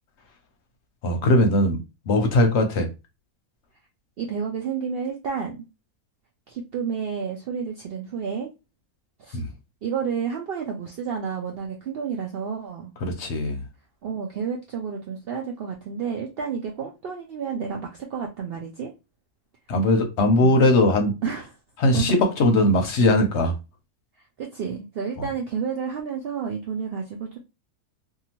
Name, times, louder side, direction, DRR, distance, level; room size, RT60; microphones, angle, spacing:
voice 1, 1.0-1.8 2.1-2.9 9.3-9.4 13.0-13.6 19.7-21.1 21.8-23.5 25.2-25.3, left 1 dB, 60° left, 0.8 m, -20 dB
voice 2, 4.2-5.6 6.5-8.5 9.2-9.4 9.8-12.9 14.0-18.9 20.3-20.7 21.2-21.5 21.9-22.1 24.4-27.4, right 6 dB, 90° right, 0.5 m, -30 dB
2.7 x 2.3 x 2.9 m
omnidirectional pair, 1.6 m